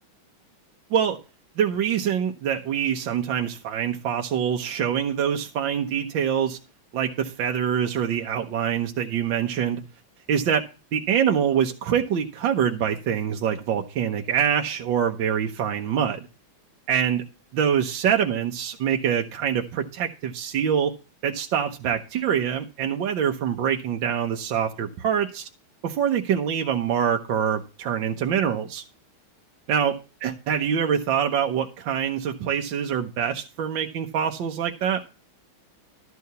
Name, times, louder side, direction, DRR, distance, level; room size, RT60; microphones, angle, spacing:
voice 1, 1.6-6.6 6.9-9.8 10.3-10.7 10.9-16.2 16.9-17.2 17.5-20.9 21.2-25.5 25.8-28.8 29.7-35.0, right 8 dB, 65° right, 1.6 m, -25 dB
12.5 x 4.7 x 6.8 m
omnidirectional pair, 2.3 m